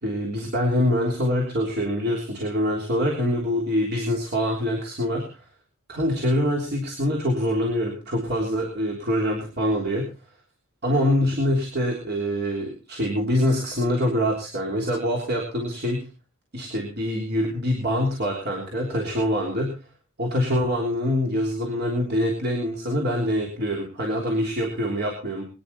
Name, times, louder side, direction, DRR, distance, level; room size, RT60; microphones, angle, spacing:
voice 1, 0.0-5.4 5.9-10.1 10.8-16.0 16.5-19.8 20.2-25.4, equal, 50° right, 0 dB, 3.4 m, -25 dB
23.0 x 10.0 x 4.2 m, 0.33 s
head